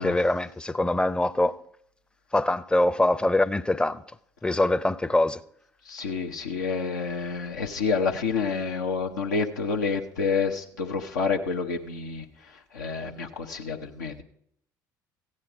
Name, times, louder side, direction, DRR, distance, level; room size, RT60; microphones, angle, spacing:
voice 1, 0.0-1.6 2.3-4.0 4.4-5.4, left 1 dB, 10° left, 0.5 m, -23 dB
voice 2, 5.9-12.2 12.7-14.2, left 5 dB, 85° left, 0.7 m, -28 dB
15.0 x 8.8 x 4.8 m
hypercardioid pair, 60°, 10 cm